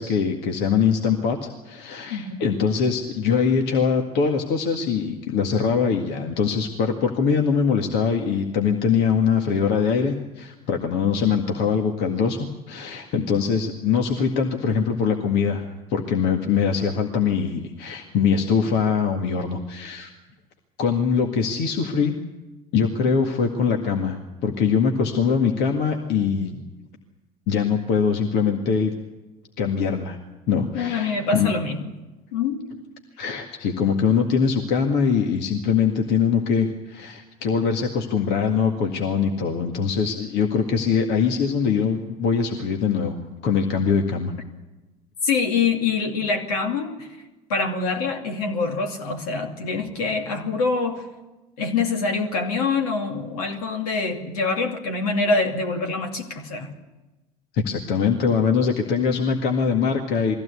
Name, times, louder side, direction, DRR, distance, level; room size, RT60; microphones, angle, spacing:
voice 1, 0.0-15.6 15.9-20.1 20.8-22.1 22.7-26.6 27.5-28.9 29.6-30.2 30.5-31.5 33.2-44.3 57.5-60.4, left 6 dB, 60° left, 3 dB, 2.0 m, -22 dB
voice 2, 2.1-2.4 30.7-31.8 32.3-32.7 45.2-47.1 47.5-51.1 51.6-56.7, left 4 dB, 75° left, 4 dB, 2.6 m, -25 dB
22.5 x 16.0 x 8.4 m, 1.1 s
hypercardioid pair, 65°, 20 cm